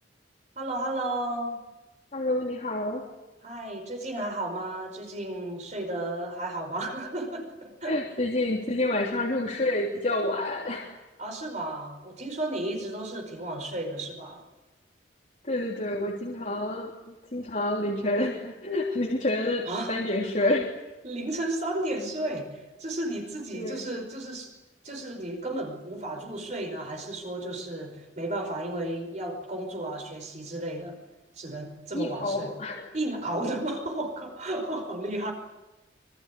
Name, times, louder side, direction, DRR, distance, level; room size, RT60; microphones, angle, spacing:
voice 1, 0.6-1.6 3.4-8.0 11.2-14.4 19.7-19.9 21.0-24.5 24.8-31.0 31.4-32.5 32.9-35.3, right 1 dB, 40° right, 3 dB, 5.2 m, -33 dB
voice 2, 2.1-3.1 7.9-11.0 15.5-20.7 23.5-23.8 31.9-32.9, left 1 dB, 40° left, -2 dB, 3.4 m, -28 dB
26.0 x 24.5 x 8.6 m, 1.1 s
head